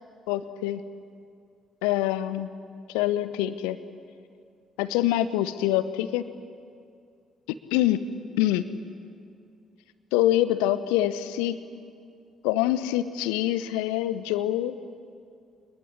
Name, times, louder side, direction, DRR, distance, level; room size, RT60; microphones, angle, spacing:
voice 1, 0.3-0.8 1.8-2.5 2.9-3.8 4.8-6.3 7.5-8.1 8.4-8.7 10.1-11.6 12.4-14.7, left 13 dB, 65° left, 13 dB, 0.9 m, -25 dB
25.5 x 20.5 x 9.9 m, 2.3 s
figure-of-eight pair, 45°, 0 cm